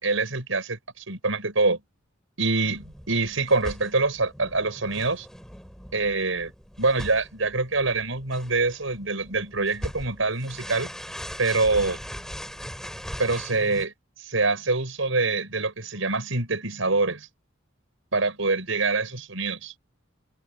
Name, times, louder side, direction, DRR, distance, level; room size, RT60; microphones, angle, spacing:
voice 1, 0.0-1.8 2.4-5.3 5.9-6.5 6.8-10.9 11.4-12.0 13.2-13.9 14.2-17.3 18.1-19.7, right 3 dB, 85° right, 5.6 m, -25 dB
sound 1, 2.7-13.9, equal, 5° left, 7.8 m, -40 dB
open air
head